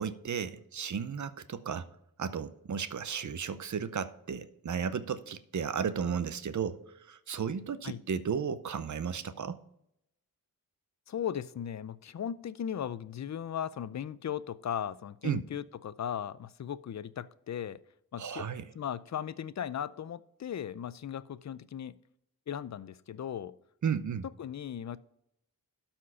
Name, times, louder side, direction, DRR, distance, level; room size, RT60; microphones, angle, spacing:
voice 1, 0.0-1.9 2.2-6.8 7.1-9.6 15.2-15.4 18.2-18.6 23.8-24.3, right 7 dB, 55° right, 13 dB, 0.7 m, -34 dB
voice 2, 11.1-17.8 18.1-18.5 18.8-21.9 22.5-23.5 24.4-25.0, left 9 dB, 50° left, 17 dB, 0.5 m, -37 dB
12.5 x 4.4 x 5.6 m, 0.78 s
wide cardioid pair, 130°, 35 cm